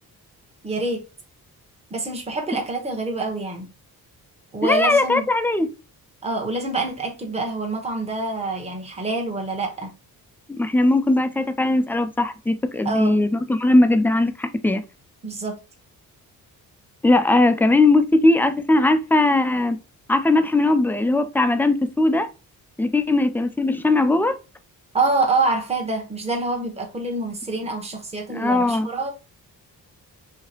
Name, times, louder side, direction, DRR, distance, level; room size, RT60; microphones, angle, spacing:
voice 1, 0.6-1.0 1.9-3.7 4.5-5.3 6.2-9.9 12.8-13.2 15.2-15.6 24.9-29.1, right 2 dB, 15° right, 1.0 m, -26 dB
voice 2, 4.6-5.7 10.6-14.8 17.0-19.8 20.1-22.3 22.8-24.4 28.3-28.9, left 2 dB, 5° left, 0.4 m, -19 dB
4.7 x 2.8 x 2.9 m
cardioid pair, 120°, 36 cm